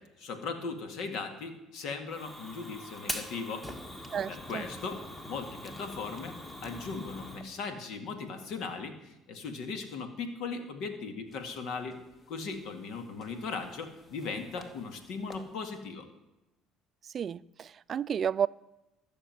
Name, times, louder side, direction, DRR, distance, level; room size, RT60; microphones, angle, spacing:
voice 1, 0.0-3.7 4.3-6.3 6.6-12.0 12.3-16.1, left 4 dB, 70° left, 2.1 m, -38 dB
Fire, 2.1-7.4, left 1 dB, 15° left, 2.0 m, -42 dB
voice 2, 4.1-4.6 17.1-18.5, right 8 dB, 45° right, 0.4 m, -31 dB
sound 1, 11.3-15.8, left 3 dB, 30° left, 1.9 m, -56 dB
14.0 x 6.7 x 9.4 m
supercardioid pair, 85°, 0 cm